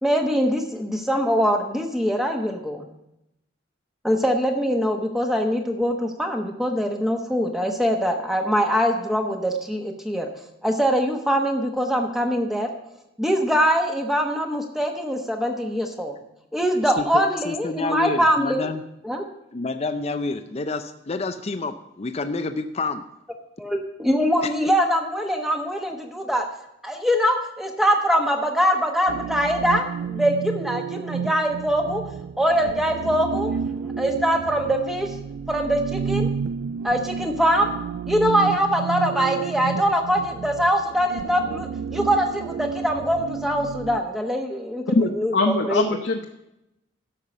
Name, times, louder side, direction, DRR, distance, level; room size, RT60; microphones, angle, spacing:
voice 1, 0.0-2.9 4.0-10.3 10.6-12.7 13.2-16.2 16.5-18.7 19.0-19.2 23.6-26.4 26.8-32.0 32.4-33.5 34.0-35.1 35.5-36.3 36.8-37.7 38.1-45.8, equal, ahead, 3 dB, 1.1 m, -23 dB
voice 2, 17.0-18.8 19.5-23.0 24.4-24.5, left 3 dB, 35° left, 9 dB, 0.5 m, -28 dB
sound 1, 29.1-44.0, right 6 dB, 85° right, 0.3 m, -31 dB
voice 3, 44.9-46.2, left 3 dB, 65° left, 3 dB, 0.8 m, -22 dB
12.0 x 5.7 x 6.6 m, 0.87 s
head